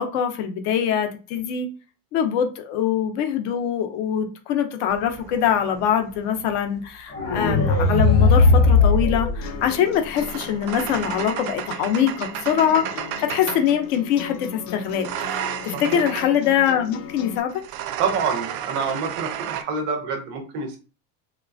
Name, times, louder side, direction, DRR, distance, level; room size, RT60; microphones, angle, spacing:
voice 1, 0.0-1.7 2.1-17.5, left 9 dB, 50° left, 6 dB, 0.5 m, -23 dB
sound 1, 4.9-7.0 8.2-13.8 14.9-16.4 17.5-19.6, right 10 dB, 80° right, 0.5 m, -33 dB
sound 2, 7.1-10.1, left 3 dB, 20° left, 0.8 m, -18 dB
sound 3, 9.4-17.4, left 10 dB, 85° left, 0.6 m, -38 dB
voice 2, 18.0-20.8, right 5 dB, 30° right, 3 dB, 0.4 m, -27 dB
3.1 x 2.2 x 2.5 m, 0.34 s
cardioid pair, 180°, 43 cm